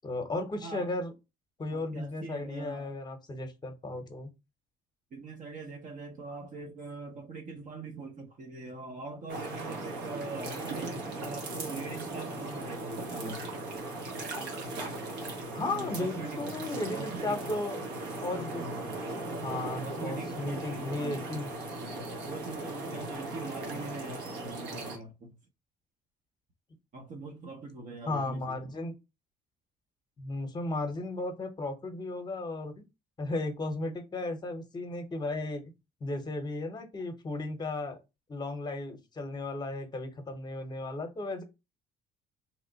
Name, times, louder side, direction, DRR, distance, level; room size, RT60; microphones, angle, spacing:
voice 1, 0.0-1.1 1.6-4.3 15.5-17.8 18.2-18.6 19.4-21.5 28.1-29.0 30.2-32.8 33.2-35.6 36.0-38.0 38.3-41.4, left 2 dB, 25° left, 0.8 m, -35 dB
voice 2, 1.7-2.9 5.1-13.5 15.6-16.4 16.9-17.4 18.5-19.0 19.8-25.4 26.9-28.6, right 3 dB, 50° right, 0.7 m, -43 dB
sound 1, 9.3-25.0, right 2 dB, 85° right, 1.1 m, -38 dB
3.0 x 2.0 x 3.9 m
cardioid pair, 110°, 17 cm